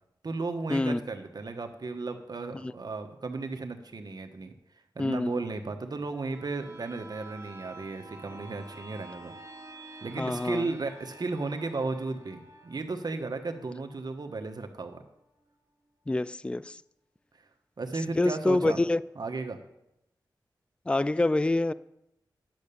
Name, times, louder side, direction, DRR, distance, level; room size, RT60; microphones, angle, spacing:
voice 1, 0.2-4.5 4.9-9.3 10.0-15.0 17.8-18.8 19.2-19.6, right 3 dB, 60° right, 1.2 m, -34 dB
voice 2, 5.0-5.4 10.2-10.7 16.1-16.8 18.2-19.0 20.9-21.7, left 2 dB, 15° left, 0.3 m, -26 dB
sound 1, 6.1-15.6 16.0-16.1, right 2 dB, 40° right, 1.7 m, -49 dB
10.5 x 6.7 x 6.8 m
cardioid pair, 60°, 8 cm